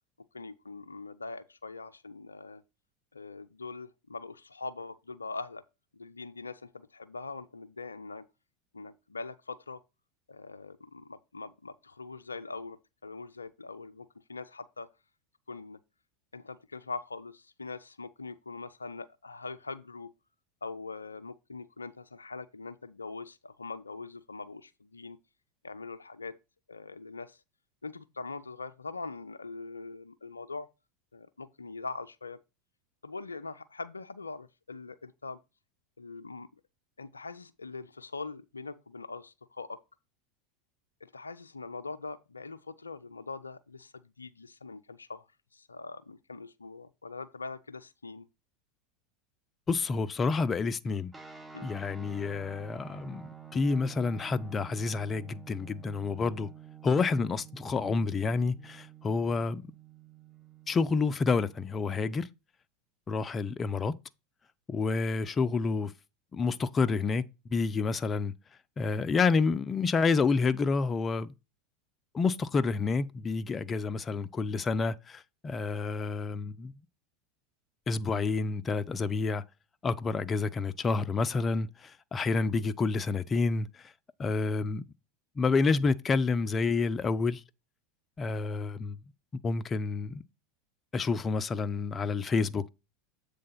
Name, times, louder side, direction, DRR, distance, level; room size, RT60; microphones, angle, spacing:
voice 1, 0.3-2.6 3.1-5.6 5.9-8.3 8.7-9.8 10.3-14.9 15.5-15.8 16.3-20.1 20.6-25.2 25.6-26.4 26.7-27.4 27.8-30.7 31.1-32.4 33.0-35.4 36.0-36.5 37.0-39.8 41.0-45.3 45.5-48.3 51.5-51.7, left 3 dB, 90° left, 0.4 m, -42 dB
voice 2, 49.7-51.1 51.6-56.5 56.8-59.6 60.7-62.3 63.1-63.9 64.7-65.9 66.3-67.2 67.5-68.3 68.8-71.3 72.1-76.7 77.9-79.4 79.8-83.9 84.2-84.8 85.4-87.4 88.2-89.0 89.4-90.2 90.9-92.7, left 4 dB, 25° left, 0.5 m, -29 dB
sound 1, 51.1-62.3, right 7 dB, 15° right, 1.0 m, -50 dB
7.6 x 3.4 x 5.6 m
figure-of-eight pair, 85°, 0 cm